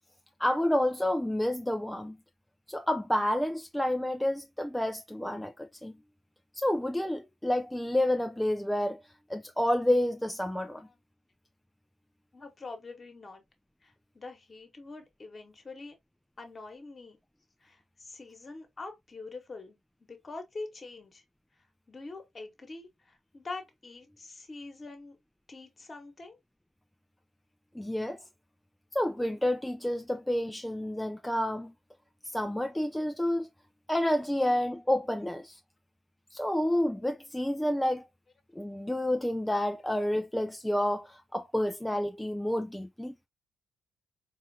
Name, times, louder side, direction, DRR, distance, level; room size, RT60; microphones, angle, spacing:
voice 1, 0.4-2.2 2.7-6.0 6.5-9.0 9.3-10.9 27.7-28.2 28.9-31.7 32.3-33.5 33.9-35.6 36.3-38.0 38.6-43.2, left 1 dB, 5° left, 0.4 m, -29 dB
voice 2, 12.3-13.4 13.8-15.9 16.4-17.2 17.6-21.2 21.6-25.2 25.5-26.4, left 3 dB, 35° left, 1.2 m, -45 dB
4.2 x 2.5 x 2.7 m
hypercardioid pair, 45°, 0 cm